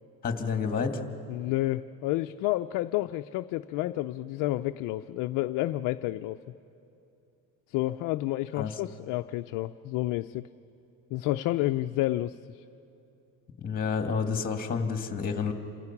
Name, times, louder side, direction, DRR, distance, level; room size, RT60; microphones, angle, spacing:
voice 1, 0.2-1.0 8.6-8.7 13.6-15.5, left 5 dB, 20° left, 5 dB, 2.0 m, -29 dB
voice 2, 1.3-6.4 7.7-10.4 11.1-12.6, left 16 dB, 50° left, 9 dB, 0.5 m, -30 dB
28.5 x 26.5 x 5.9 m, 2.8 s
cardioid pair, 145°, 40 cm